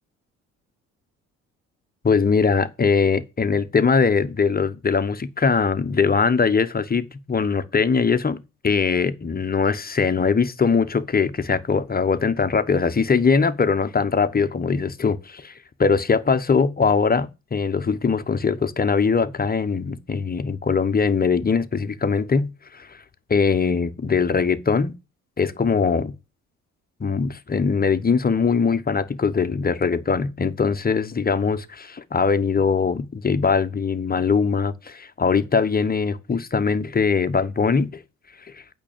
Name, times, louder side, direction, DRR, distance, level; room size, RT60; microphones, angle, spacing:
voice 1, 2.0-15.5 15.8-23.0 23.3-24.9 25.4-26.1 27.0-38.0 38.4-38.6, left 5 dB, 25° left, 1.2 m, -21 dB
8.9 x 5.6 x 7.4 m
figure-of-eight pair, 45°, 39 cm